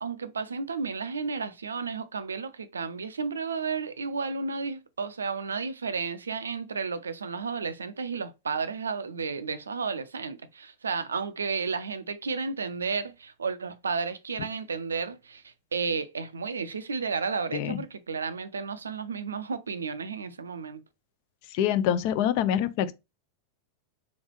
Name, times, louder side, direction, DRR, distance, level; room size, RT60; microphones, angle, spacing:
voice 1, 0.0-20.8, right 5 dB, 70° right, 0.4 m, -32 dB
voice 2, 21.5-22.9, left 10 dB, 45° left, 0.3 m, -25 dB
3.5 x 3.1 x 3.1 m
figure-of-eight pair, 90°, 0 cm